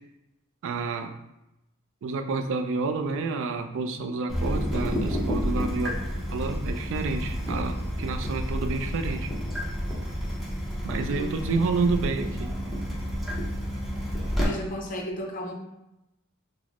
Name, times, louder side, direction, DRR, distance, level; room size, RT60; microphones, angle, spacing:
voice 1, 0.6-1.1 2.0-6.0 6.3-9.3 10.8-12.5, right 4 dB, 60° right, 7 dB, 0.3 m, -29 dB
Water tap faucet / Drip, 4.3-14.4, equal, ahead, 0.7 m, -30 dB
voice 2, 11.1-11.7 14.4-15.5, left 1 dB, 40° left, 1 dB, 0.5 m, -34 dB
4.0 x 2.0 x 2.9 m, 0.91 s
head